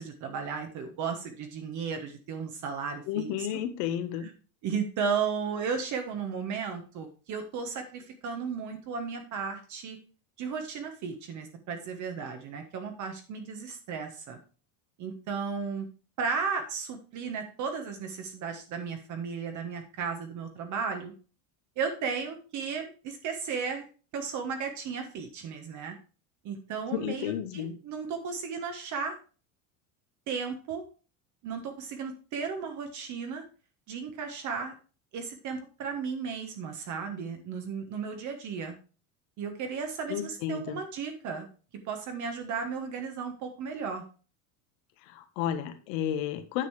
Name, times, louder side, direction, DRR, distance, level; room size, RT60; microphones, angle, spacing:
voice 1, 0.0-3.3 4.2-4.3 4.6-10.0 10.4-14.4 15.0-15.9 16.2-21.1 21.8-23.9 24.1-25.9 26.4-29.2 30.3-30.8 31.4-33.4 33.9-34.7 35.1-38.7 39.4-41.5 41.8-44.0, right 5 dB, 40° right, 5 dB, 1.5 m, -34 dB
voice 2, 3.1-4.3 26.9-27.8 40.1-40.8 45.0-46.7, left 10 dB, 70° left, 9 dB, 1.5 m, -32 dB
9.3 x 5.2 x 4.9 m, 0.36 s
supercardioid pair, 140°, 43 cm